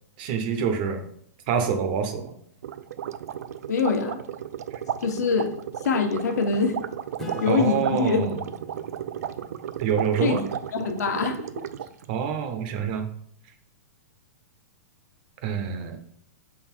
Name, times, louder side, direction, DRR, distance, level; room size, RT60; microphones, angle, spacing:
voice 1, 0.2-1.0 1.5-2.3 7.5-8.3 9.8-10.5 12.1-13.1 15.4-16.0, right 7 dB, 30° right, 7 dB, 0.7 m, -26 dB
sound 1, 2.6-12.0, right 9 dB, 70° right, 0.4 m, -34 dB
voice 2, 3.7-4.2 5.0-5.5 5.8-6.8 7.4-8.2 10.2-10.4 10.7-11.5, left 5 dB, 75° left, 5 dB, 1.1 m, -24 dB
Acoustic guitar / Strum, 7.2-12.2, left 2 dB, 5° left, 0.7 m, -44 dB
6.3 x 3.8 x 4.4 m, 0.66 s
hypercardioid pair, 170°, 9 cm